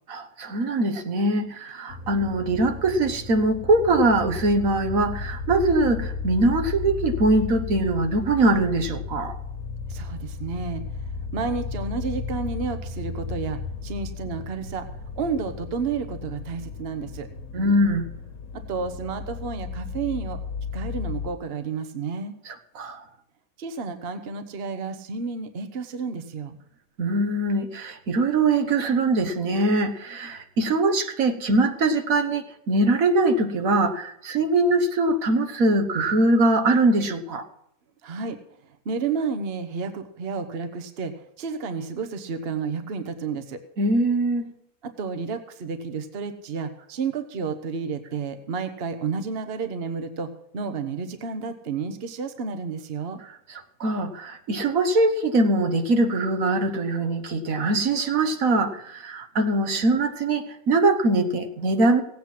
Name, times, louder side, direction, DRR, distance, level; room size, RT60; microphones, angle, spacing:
voice 1, 0.1-9.4 17.5-18.1 22.5-23.0 27.0-37.5 43.8-44.5 53.2-62.0, right 2 dB, 70° right, 7 dB, 1.6 m, -22 dB
sound 1, 1.9-21.3, left 5 dB, 70° left, 1.6 m, -34 dB
voice 2, 9.9-10.8 11.3-14.9 15.2-17.3 18.5-20.4 20.7-22.3 23.6-26.6 38.0-38.4 38.8-43.6 44.8-53.2, right 5 dB, 45° right, 9 dB, 1.2 m, -31 dB
17.5 x 8.5 x 6.0 m, 0.74 s
omnidirectional pair, 1.5 m